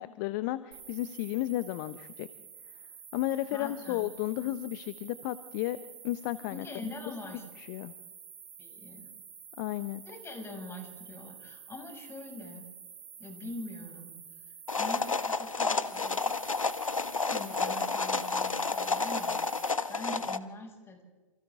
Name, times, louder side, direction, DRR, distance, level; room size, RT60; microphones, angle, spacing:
voice 1, 0.0-2.3 3.1-5.8 6.0-6.9 7.6-7.9 9.6-10.0, left 16 dB, 40° left, 14 dB, 0.9 m, -33 dB
sound 1, 0.7-19.7, right 7 dB, 60° right, 6.4 m, -49 dB
voice 2, 3.5-4.1 6.5-7.4 8.6-9.1 10.0-12.7 13.2-14.4 14.7-16.3 17.3-21.0, left 2 dB, 15° left, 1 dB, 6.7 m, -44 dB
sound 2, 14.7-20.4, left 4 dB, 80° left, 1.2 m, -30 dB
29.0 x 28.5 x 3.7 m, 1.3 s
figure-of-eight pair, 110°, 17 cm